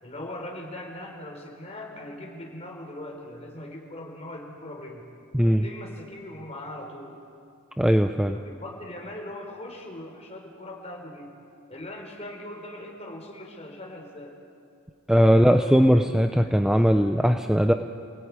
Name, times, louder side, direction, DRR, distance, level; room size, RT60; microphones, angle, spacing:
voice 1, 0.0-5.0 5.4-7.2 8.3-11.3 11.7-14.4 15.1-16.9, left 1 dB, 30° left, 1 dB, 4.6 m, -40 dB
voice 2, 7.8-8.4 15.1-17.7, equal, 5° right, 6 dB, 0.7 m, -19 dB
28.5 x 18.5 x 9.7 m, 2.4 s
head